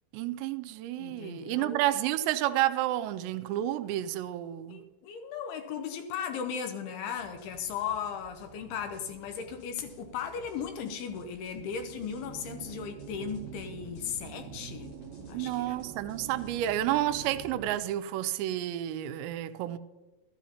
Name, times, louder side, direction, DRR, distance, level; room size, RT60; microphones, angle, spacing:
voice 1, 0.1-4.8 15.3-19.8, right 13 dB, 90° right, 2.8 m, -30 dB
voice 2, 1.0-1.8 4.7-14.9 15.3-15.8, left 7 dB, 80° left, 2.5 m, -37 dB
sound 1, 7.2-16.8, equal, 55° left, 1.7 m, -55 dB
sound 2, 11.5-17.8, right 7 dB, 75° right, 2.6 m, -45 dB
13.5 x 12.5 x 2.8 m
omnidirectional pair, 5.0 m